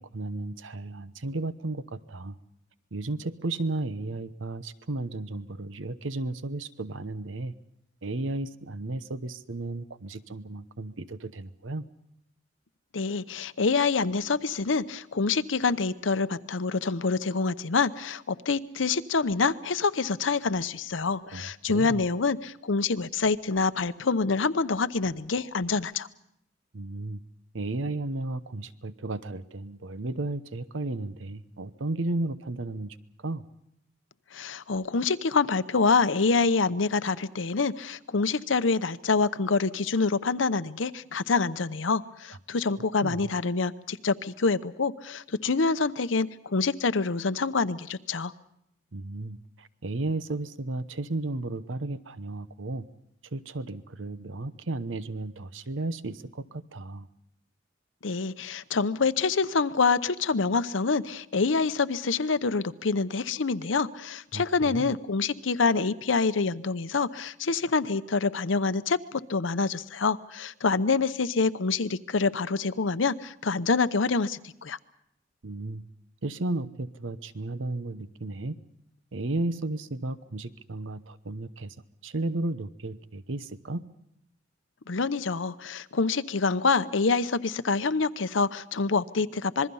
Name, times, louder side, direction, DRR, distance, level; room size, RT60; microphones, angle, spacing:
voice 1, 0.0-2.3 2.9-7.5 8.0-11.8 21.3-22.0 26.7-27.2 27.5-33.0 33.2-33.4 43.0-43.2 48.9-52.9 53.3-57.1 64.3-64.9 75.4-75.9 76.2-78.6 79.1-81.7 82.0-83.9, right 2 dB, 90° right, 14 dB, 0.9 m, -34 dB
voice 2, 12.9-26.1 34.3-48.3 58.0-74.8 84.9-89.7, left 4 dB, 85° left, 13 dB, 0.8 m, -26 dB
26.5 x 21.5 x 5.5 m, 0.76 s
head